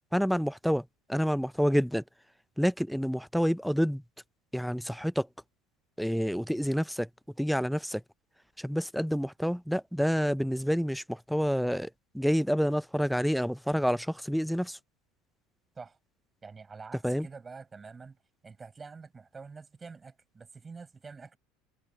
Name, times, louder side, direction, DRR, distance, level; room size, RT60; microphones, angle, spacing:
voice 1, 0.1-2.0 2.6-4.0 4.5-5.3 6.0-7.1 7.4-8.0 8.6-14.8 17.0-17.3, equal, ahead, 0.5 m, -28 dB
voice 2, 16.4-18.2 18.4-21.4, right 4 dB, 20° right, 4.8 m, -47 dB
hypercardioid pair, 90°, 0 cm